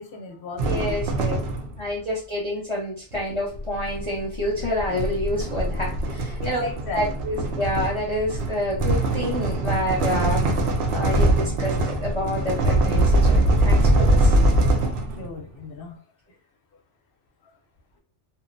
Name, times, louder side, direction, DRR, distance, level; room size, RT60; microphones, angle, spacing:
voice 1, 0.0-1.0 6.4-7.0 14.8-15.9, left 4 dB, 60° left, 2 dB, 0.7 m, -36 dB
voice 2, 0.6-1.4 1.8-6.6 6.9-10.4 10.9-14.3, left 1 dB, 30° left, -5 dB, 0.8 m, -28 dB
sound 1, 0.6-1.9 3.1-15.3, right 1 dB, 65° right, 0.8 m, -22 dB
2.6 x 2.0 x 2.5 m, 0.42 s
omnidirectional pair, 1.2 m